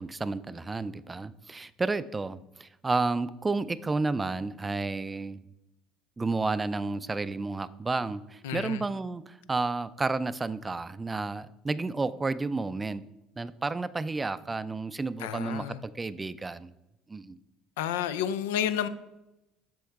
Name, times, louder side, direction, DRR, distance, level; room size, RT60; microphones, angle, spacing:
voice 1, 0.0-5.4 6.2-13.0 13.4-16.7 17.1-17.4, right 3 dB, 20° right, 16 dB, 0.4 m, -31 dB
voice 2, 8.4-8.8 15.2-15.8 17.8-18.9, left 10 dB, 80° left, 13 dB, 0.4 m, -30 dB
7.7 x 6.2 x 3.5 m, 0.94 s
hypercardioid pair, 65°, 0 cm